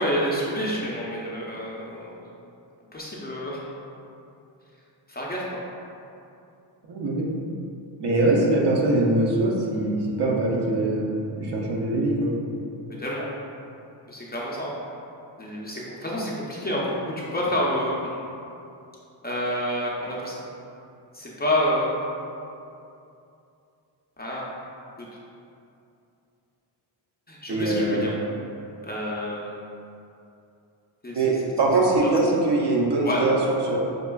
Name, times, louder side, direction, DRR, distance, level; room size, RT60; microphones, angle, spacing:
voice 1, 0.0-2.2 2.9-3.6 5.1-5.4 13.0-13.2 14.1-14.7 15.4-18.2 19.2-20.3 21.1-21.9 24.2-24.4 27.3-28.1 28.8-29.5 31.0-31.4 33.0-33.2, equal, 20° left, -5 dB, 0.5 m, -28 dB
voice 2, 6.9-7.2 8.0-11.1 11.4-12.3 27.5-28.1 31.1-33.7, right 2 dB, 60° right, -2 dB, 0.7 m, -22 dB
5.2 x 2.4 x 2.3 m, 2.7 s
cardioid pair, 95°, 47 cm